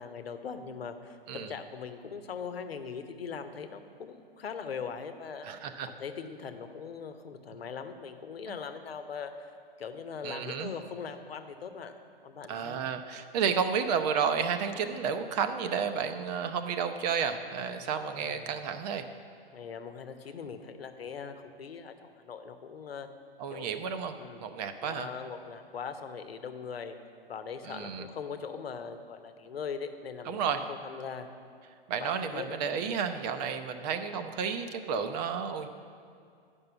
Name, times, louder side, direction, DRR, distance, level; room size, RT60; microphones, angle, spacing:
voice 1, 0.0-5.5 5.9-9.5 9.8-12.0 12.2-12.8 18.2-18.7 19.5-23.1 23.5-23.7 24.2-24.4 24.8-26.9 27.3-30.4 30.7-31.3 32.0-32.5 32.8-33.0, left 6 dB, 85° left, 8 dB, 0.9 m, -41 dB
voice 2, 5.4-5.9 8.5-8.6 10.2-10.7 12.5-19.0 23.4-24.1 24.4-25.1 27.6-28.1 30.2-30.7 31.9-35.7, right 6 dB, 45° right, 8 dB, 0.7 m, -31 dB
9.6 x 5.4 x 6.9 m, 2.3 s
hypercardioid pair, 120°, 29 cm